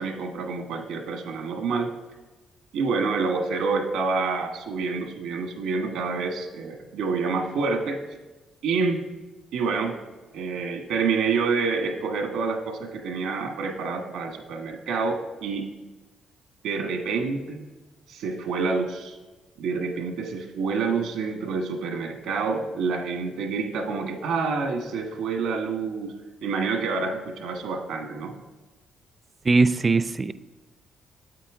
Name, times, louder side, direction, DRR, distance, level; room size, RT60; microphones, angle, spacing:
voice 1, 0.0-1.9 2.7-8.0 8.6-9.0 9.5-9.9 10.3-15.7 16.6-17.6 18.1-19.2 19.6-28.4, right 4 dB, 90° right, 3 dB, 1.3 m, -28 dB
voice 2, 29.5-30.3, right 3 dB, 30° right, 14 dB, 0.4 m, -20 dB
8.5 x 8.4 x 3.7 m, 1.2 s
cardioid pair, 90°, 0 cm